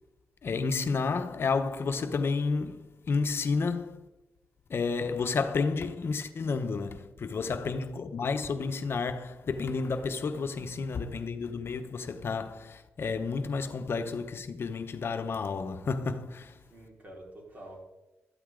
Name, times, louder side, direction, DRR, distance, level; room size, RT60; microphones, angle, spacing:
voice 1, 0.4-4.1 4.7-16.5, left 4 dB, 60° left, 0.9 m, -31 dB
voice 2, 7.3-7.8 16.7-17.8, right 1 dB, 40° right, 4.6 m, -48 dB
13.0 x 12.0 x 3.8 m
cardioid pair, 80°, 5 cm